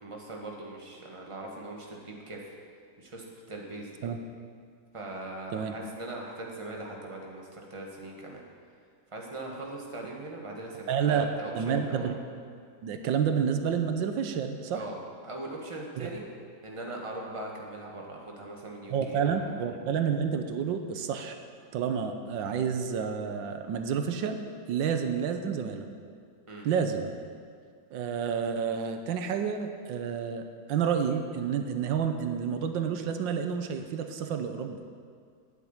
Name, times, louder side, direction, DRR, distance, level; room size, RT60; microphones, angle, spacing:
voice 1, 0.0-2.5 3.0-4.1 4.9-8.4 9.1-12.1 14.7-15.0 15.2-16.2 16.6-19.7 26.5-26.7, right 2 dB, 15° right, -1 dB, 1.6 m, -40 dB
voice 2, 10.9-11.3 11.5-12.1 12.8-14.8 16.0-16.1 18.9-21.3 21.7-25.9 26.6-27.1 27.9-30.4 30.7-34.8, right 7 dB, 85° right, 7 dB, 1.5 m, -29 dB
9.4 x 8.1 x 8.8 m, 2.1 s
omnidirectional pair, 2.0 m